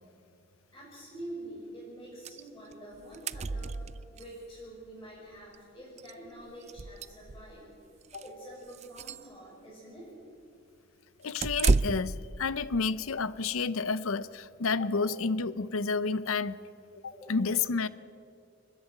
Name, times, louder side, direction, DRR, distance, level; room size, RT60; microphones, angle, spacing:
voice 1, 0.7-3.8 4.1-7.7 8.1-10.1 14.8-15.1 17.1-17.4, right 1 dB, 15° left, 6.4 m, -46 dB
sound 1, 2.3-2.4 2.7-2.8 3.0-4.3 5.5-5.6 6.0-6.1 6.6-7.6 8.0-8.3 8.7-9.3 11.4-12.2, right 3 dB, 35° right, 0.4 m, -30 dB
voice 2, 11.2-16.6 17.3-17.9, left 4 dB, 80° left, 0.7 m, -30 dB
29.0 x 11.0 x 9.4 m
head